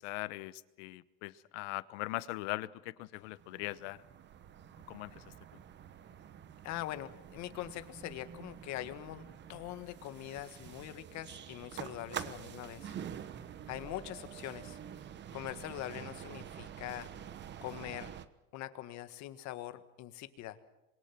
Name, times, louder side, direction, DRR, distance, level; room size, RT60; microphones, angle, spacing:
voice 1, 0.0-4.0 4.9-5.2, left 19 dB, 75° left, 17 dB, 1.1 m, -40 dB
sound 1, 3.2-18.3, right 9 dB, 30° right, 1.1 m, -47 dB
voice 2, 6.6-9.2 9.5-12.9 13.7-14.8 15.3-17.1 17.6-18.2 18.5-20.6, left 14 dB, 50° left, 11 dB, 1.8 m, -43 dB
27.0 x 22.5 x 6.1 m, 0.97 s
supercardioid pair, 135°, 36 cm